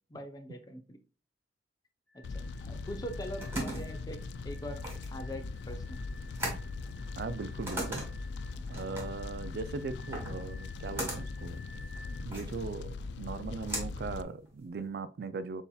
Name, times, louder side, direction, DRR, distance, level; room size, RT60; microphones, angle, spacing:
voice 1, 0.1-1.0 2.3-4.2 4.4-4.8 5.1-6.0 8.6-8.8, equal, 20° left, 0.6 m, -42 dB
sound 1, 2.1-12.3, left 2 dB, 5° left, 0.9 m, -56 dB
Fire, 2.2-14.2, left 4 dB, 70° left, 0.3 m, -40 dB
sound 2, 3.0-14.9, right 1 dB, 15° right, 1.6 m, -41 dB
voice 2, 7.2-8.0 8.7-11.6 12.2-15.6, right 4 dB, 60° right, 0.3 m, -39 dB
6.9 x 2.8 x 2.3 m
head